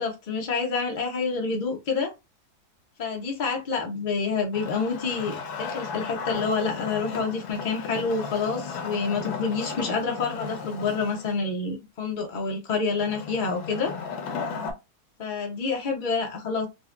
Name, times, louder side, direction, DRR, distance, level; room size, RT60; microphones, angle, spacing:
voice 1, 0.0-2.1 3.0-13.9 15.2-16.7, left 4 dB, 65° left, 0.4 m, -28 dB
Wood, 4.5-11.3 13.0-14.7, left 5 dB, 85° left, 1.2 m, -35 dB
3.8 x 2.1 x 2.4 m
omnidirectional pair, 1.7 m